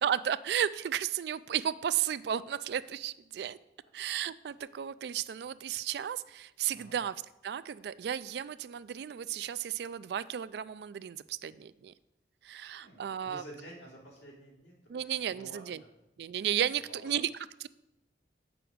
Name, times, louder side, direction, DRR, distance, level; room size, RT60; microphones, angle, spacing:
voice 1, 0.0-3.6 3.9-7.1 7.4-11.9 12.4-13.4 14.9-15.8 16.2-17.3, right 9 dB, 65° right, 16 dB, 0.3 m, -33 dB
voice 2, 12.7-15.6 16.9-17.2, right 1 dB, 80° left, -3 dB, 2.9 m, -51 dB
7.8 x 6.2 x 5.0 m, 0.89 s
head